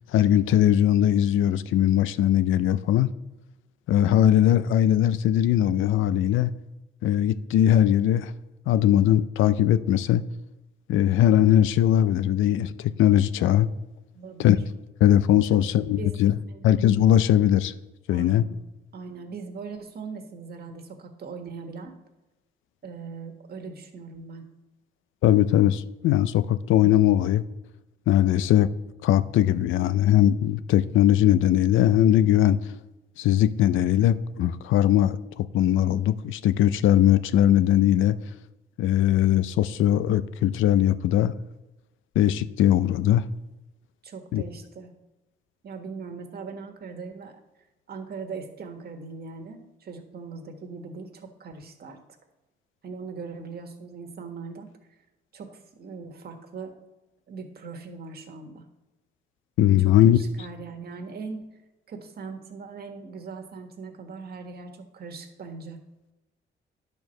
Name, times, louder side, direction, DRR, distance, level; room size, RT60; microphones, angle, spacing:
voice 1, 0.1-3.1 3.9-6.5 7.0-8.3 8.7-10.2 10.9-13.7 14.4-14.6 15.0-16.3 16.6-17.7 18.1-18.4 25.2-27.4 28.1-28.7 29.0-32.6 33.2-38.2 38.8-41.3 42.2-43.2 44.3-44.4 59.6-60.2, left 11 dB, 80° left, 0.5 m, -20 dB
voice 2, 14.1-14.6 15.5-16.1 16.5-16.7 18.1-18.6 18.9-22.0 22.8-24.5 44.0-44.9 45.6-47.4 47.9-52.0 52.8-54.7 55.3-56.7 57.3-58.7 59.8-61.4 61.9-65.8, right 4 dB, 50° right, 1.6 m, -40 dB
10.5 x 4.6 x 6.5 m
cardioid pair, 90°, 20 cm